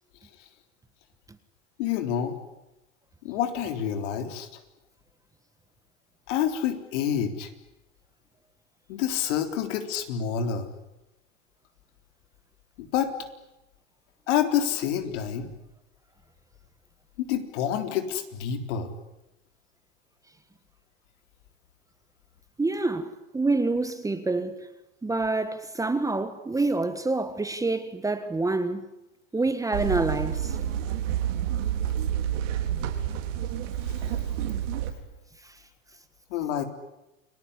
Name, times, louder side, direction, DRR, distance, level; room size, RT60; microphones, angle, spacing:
voice 1, 1.8-2.4 3.2-4.5 6.3-7.5 8.9-10.7 12.8-13.1 14.3-15.5 17.2-18.9 36.3-36.6, left 9 dB, 65° left, 3.9 m, -28 dB
voice 2, 22.6-24.7 25.0-28.8 29.3-30.6 35.4-35.6, right 3 dB, 10° right, 1.5 m, -27 dB
sound 1, 29.7-34.9, right 10 dB, 70° right, 4.5 m, -29 dB
29.5 x 19.0 x 9.9 m
hypercardioid pair, 120°, 39 cm